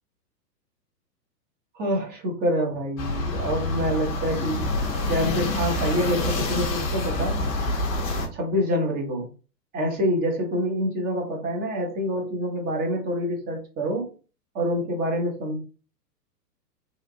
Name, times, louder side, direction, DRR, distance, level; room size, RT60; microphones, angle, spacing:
voice 1, 1.7-4.7 5.1-7.5 8.3-9.3 9.7-14.1 14.5-15.6, equal, 20° right, 1 dB, 0.7 m, -26 dB
sound 1, 3.0-8.3, left 2 dB, 25° left, 0.5 m, -27 dB
2.9 x 2.4 x 2.5 m, 0.35 s
figure-of-eight pair, 110°, 49 cm